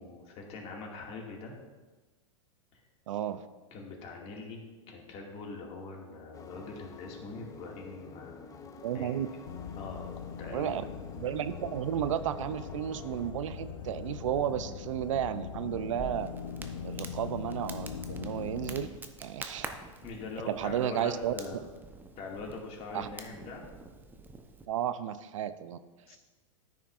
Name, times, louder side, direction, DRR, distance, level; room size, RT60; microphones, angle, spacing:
voice 1, 0.0-1.5 2.7-2.8 3.7-4.6 4.9-8.7 8.9-9.2 9.8-10.1 10.4-10.7 20.0-21.6 22.2-23.6 26.1-26.2, left 3 dB, 40° left, 0 dB, 2.1 m, -42 dB
voice 2, 3.1-3.4 8.8-9.3 10.5-10.8 11.2-16.3 16.8-18.9 19.2-19.7 20.5-21.3 22.9-23.1 24.7-25.8, right 10 dB, 70° right, 13 dB, 0.5 m, -33 dB
sound 1, 6.3-13.3, left 4 dB, 20° left, 0.6 m, -49 dB
sound 2, 9.4-18.9, left 7 dB, 75° left, 0.7 m, -41 dB
Crackle, 16.0-24.7, right 3 dB, 10° right, 0.7 m, -47 dB
13.5 x 5.7 x 2.5 m, 1.2 s
hypercardioid pair, 105°, 17 cm